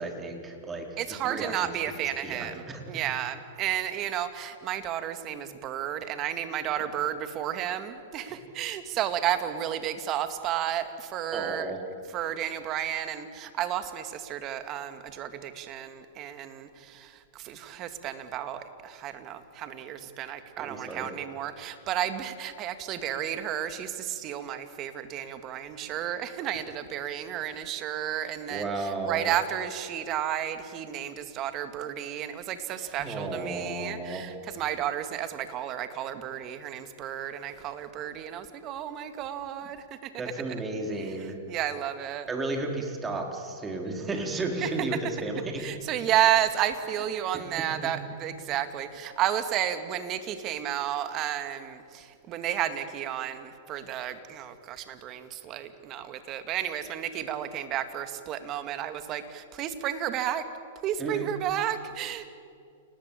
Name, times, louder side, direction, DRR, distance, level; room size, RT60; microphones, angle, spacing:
voice 1, 0.0-1.7 2.2-2.8 6.8-6.9 8.3-8.4 11.3-11.8 20.6-21.1 28.5-29.3 32.8-34.3 40.2-41.4 42.3-45.7 47.3-47.9 61.0-61.3, right 2 dB, 20° right, 3 dB, 4.1 m, -34 dB
voice 2, 1.0-11.7 12.1-40.1 41.0-41.1 41.5-42.3 44.6-44.7 45.6-60.5 60.8-62.3, right 11 dB, 35° right, 9 dB, 2.2 m, -32 dB
29.0 x 19.0 x 8.5 m, 2.4 s
hypercardioid pair, 115°, 0 cm